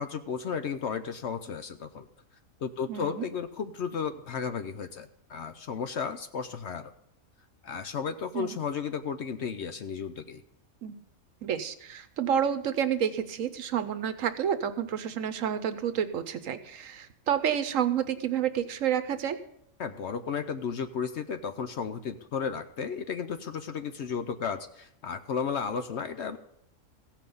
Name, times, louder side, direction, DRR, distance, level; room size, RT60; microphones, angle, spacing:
voice 1, 0.0-2.1 2.6-6.9 7.6-10.4 19.8-26.4, left 6 dB, 60° left, 9 dB, 0.8 m, -34 dB
voice 2, 2.9-3.2 8.3-8.6 10.8-11.0 11.4-19.4, right 9 dB, 65° right, 10 dB, 1.1 m, -29 dB
15.5 x 5.9 x 6.9 m, 0.75 s
omnidirectional pair, 1.5 m